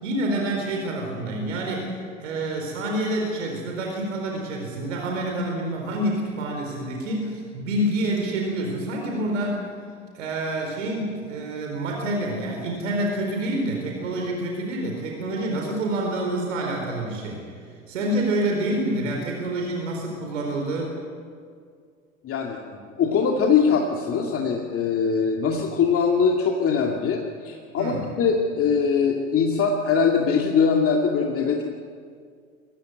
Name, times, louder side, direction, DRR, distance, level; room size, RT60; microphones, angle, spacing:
voice 1, 0.0-9.6 10.1-17.4 17.9-20.9 27.8-28.1, right 1 dB, 70° right, 1 dB, 4.3 m, -27 dB
voice 2, 22.2-31.6, left 6 dB, 35° left, 1 dB, 2.2 m, -22 dB
22.5 x 16.0 x 9.2 m, 2.1 s
figure-of-eight pair, 75°, 40 cm